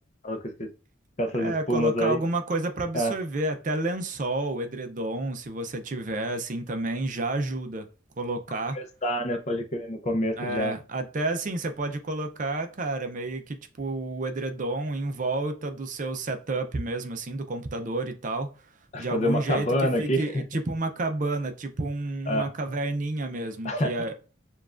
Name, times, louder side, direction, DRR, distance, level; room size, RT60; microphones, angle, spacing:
voice 1, 0.2-0.7 1.2-2.2 2.9-3.1 8.7-10.7 18.9-20.4 22.3-22.5 23.6-23.9, equal, 35° left, 0.5 m, -27 dB
voice 2, 1.4-7.9 8.2-8.8 10.4-18.5 19.0-24.1, right 2 dB, 40° right, 0.5 m, -30 dB
6.9 x 2.3 x 2.4 m
head